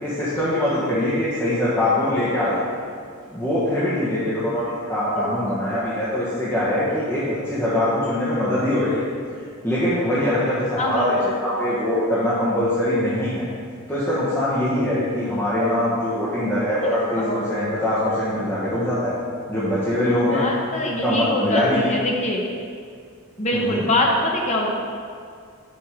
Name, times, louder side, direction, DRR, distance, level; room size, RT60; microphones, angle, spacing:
voice 1, 0.0-2.6 3.3-9.1 9.6-13.5 13.9-19.1 19.5-20.4 20.8-21.9 23.5-23.8, left 1 dB, 10° left, -11 dB, 1.5 m, -22 dB
voice 2, 5.1-5.6 10.8-11.1 16.8-17.5 20.3-22.4 23.4-24.7, left 1 dB, 30° left, -1 dB, 1.2 m, -24 dB
7.5 x 5.7 x 5.2 m, 2.2 s
head